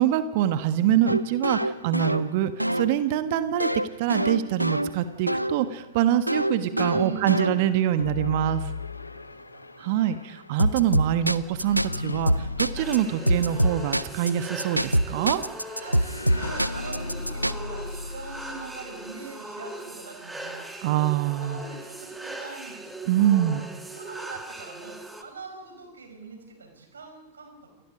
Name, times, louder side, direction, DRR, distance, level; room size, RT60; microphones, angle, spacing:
voice 1, 0.0-3.7 4.0-8.6 9.8-15.4 20.8-21.6 23.1-23.6, right 11 dB, 50° right, 10 dB, 1.5 m, -25 dB
sound 1, 1.1-5.6 6.3-7.9 10.6-12.0 12.3-13.0 13.3-14.3 14.6-17.5, right 1 dB, 90° right, 0.6 m, -25 dB
voice 2, 6.7-7.6 8.0-8.6 8.9-9.7 15.1-20.9 21.4-23.5 23.9-27.8, right 4 dB, 70° right, 6 dB, 5.4 m, -42 dB
sound 2, 8.0-19.3, left 3 dB, 80° left, 0.9 m, -37 dB
sound 3, 12.8-25.2, right 2 dB, 5° right, 2.5 m, -40 dB
28.5 x 19.5 x 5.2 m, 1.1 s
figure-of-eight pair, 90°, 0 cm